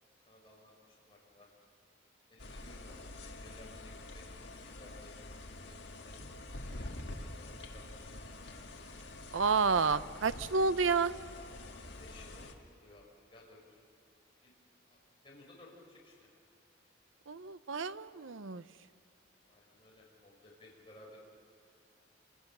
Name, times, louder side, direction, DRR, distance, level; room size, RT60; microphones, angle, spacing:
voice 1, 0.3-1.5 2.3-2.9 3.2-5.1 5.6-6.1 6.5-8.0 12.0-12.5 12.8-13.1 13.3-13.6 14.4-14.5 14.9-15.0 15.2-16.3 19.5-21.2, left 2 dB, 25° left, -3 dB, 5.6 m, -58 dB
sound 1, 2.4-12.5, left 2 dB, 60° left, 1.9 m, -47 dB
voice 2, 9.3-11.1 17.3-18.6, right 4 dB, 80° right, 14 dB, 0.7 m, -30 dB
27.5 x 26.5 x 6.8 m, 2.5 s
head